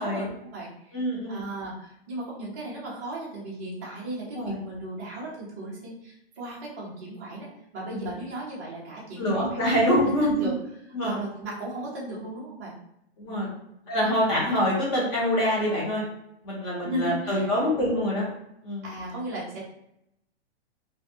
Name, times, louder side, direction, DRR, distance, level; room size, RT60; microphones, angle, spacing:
voice 1, 0.0-1.0 1.3-10.5 11.0-12.7 13.2-13.5 13.8-13.9 16.8-17.5 18.8-19.7, right 1 dB, 15° right, -6 dB, 0.4 m, -36 dB
voice 2, 0.9-1.4 4.3-4.6 7.9-8.0 9.2-10.5 10.9-11.2 13.2-13.5 13.9-16.0 16.4-18.3 18.6-18.8, equal, 25° left, -5 dB, 1.1 m, -25 dB
3.0 x 2.5 x 2.8 m, 0.79 s
hypercardioid pair, 165°, 33 cm